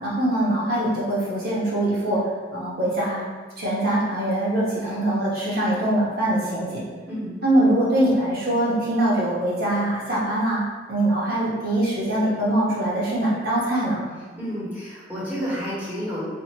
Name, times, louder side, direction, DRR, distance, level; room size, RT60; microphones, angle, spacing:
voice 1, 0.0-3.2 3.6-6.8 7.4-10.6 10.9-14.1, right 1 dB, 55° right, -7 dB, 1.2 m, -23 dB
voice 2, 7.0-7.3 14.3-16.2, equal, 10° right, -9 dB, 1.4 m, -30 dB
4.3 x 2.8 x 2.9 m, 1.4 s
head